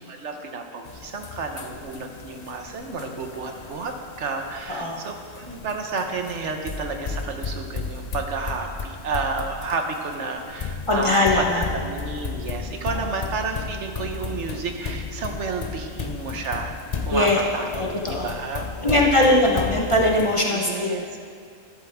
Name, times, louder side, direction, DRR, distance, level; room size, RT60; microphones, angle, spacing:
voice 1, 0.0-11.5 11.7-16.7 17.0-17.7 18.1-19.6 20.5-21.2, right 4 dB, 65° right, 4 dB, 1.1 m, -31 dB
sound 1, 0.8-20.3, left 5 dB, 45° left, 0.5 m, -34 dB
voice 2, 10.9-11.6 17.1-17.4 17.7-18.3 18.8-20.9, left 1 dB, 25° left, -2 dB, 1.0 m, -20 dB
12.0 x 11.5 x 3.4 m, 2.3 s
omnidirectional pair, 1.3 m